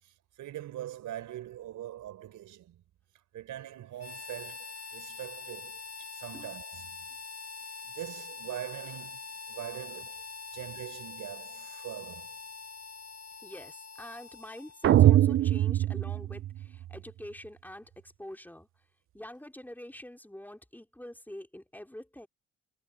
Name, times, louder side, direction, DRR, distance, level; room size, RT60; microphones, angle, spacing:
voice 1, 0.0-2.8 3.3-7.1 7.8-10.2 10.5-12.4, right 12 dB, 80° right, 4.7 m, -43 dB
Harmonica, 4.0-15.1, left 4 dB, 55° left, 3.3 m, -44 dB
voice 2, 13.4-18.7 19.1-22.3, left 1 dB, 5° left, 3.8 m, -46 dB
sound 1, 14.8-17.0, right 13 dB, 45° right, 0.5 m, -23 dB
cardioid pair, 90°, 30 cm